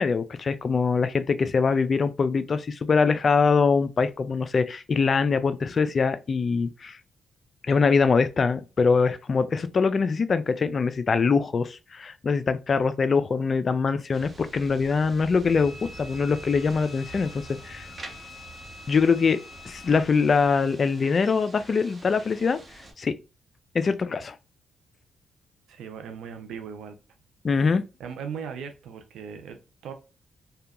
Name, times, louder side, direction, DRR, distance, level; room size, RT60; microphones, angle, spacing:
voice 1, 0.0-7.0 7.6-17.9 18.9-19.4 19.7-22.6 23.0-23.1 23.7-24.4 27.4-27.8, left 5 dB, 50° left, 0.3 m, -23 dB
sound 1, 14.1-22.9, right 2 dB, 35° right, 0.9 m, -46 dB
Wind instrument woodwind instrument, 15.4-20.1, left 4 dB, ahead, 1.1 m, -46 dB
voice 2, 25.7-27.0 28.0-29.9, right 7 dB, 80° right, 0.5 m, -38 dB
2.7 x 2.2 x 2.4 m
supercardioid pair, 60°, 0 cm